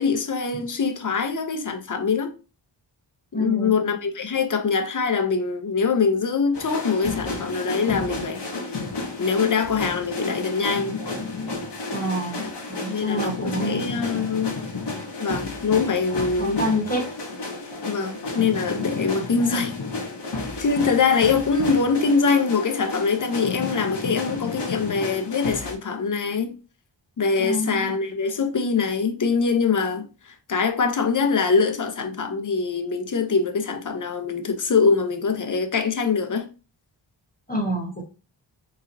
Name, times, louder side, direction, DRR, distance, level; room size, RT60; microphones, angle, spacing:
voice 1, 0.0-2.3 3.3-8.4 9.2-11.0 12.4-12.5 12.9-14.5 15.2-16.6 17.9-19.7 20.6-26.5 27.2-30.1 30.5-36.5, left 5 dB, 45° left, 0.7 m, -23 dB
voice 2, 3.3-3.8 11.9-12.5 12.8-14.0 16.4-17.1 27.4-27.9 37.5-38.0, equal, 20° left, 1.3 m, -27 dB
sound 1, 6.5-25.8, left 3 dB, 65° left, 1.0 m, -31 dB
3.8 x 3.0 x 2.6 m
wide cardioid pair, 70°, 44 cm